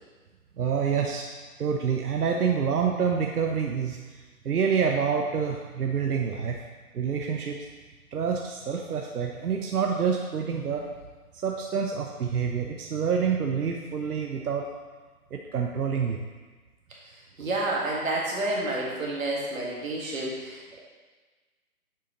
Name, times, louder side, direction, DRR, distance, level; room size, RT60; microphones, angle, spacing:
voice 1, 0.6-1.3 1.6-4.0 4.4-6.6 6.9-7.6 8.1-10.9 11.3-14.6 15.3-16.2, right 6 dB, 80° right, 1 dB, 0.8 m, -27 dB
voice 2, 17.4-20.8, right 2 dB, 60° right, -4 dB, 1.7 m, -29 dB
7.1 x 5.7 x 3.0 m, 1.3 s
hypercardioid pair, 175°, 45 cm